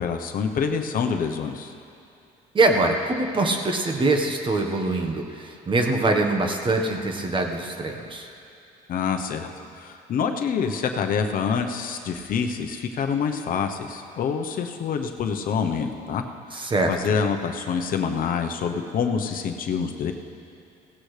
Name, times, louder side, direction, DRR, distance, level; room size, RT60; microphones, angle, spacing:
voice 1, 0.0-1.7 8.9-9.5 9.7-16.2 16.5-20.1, left 6 dB, 55° left, 5 dB, 0.9 m, -26 dB
voice 2, 2.5-8.3 16.5-17.2, right 2 dB, 30° right, 3 dB, 1.3 m, -23 dB
17.0 x 16.0 x 3.3 m, 2.6 s
cardioid pair, 110°, 17 cm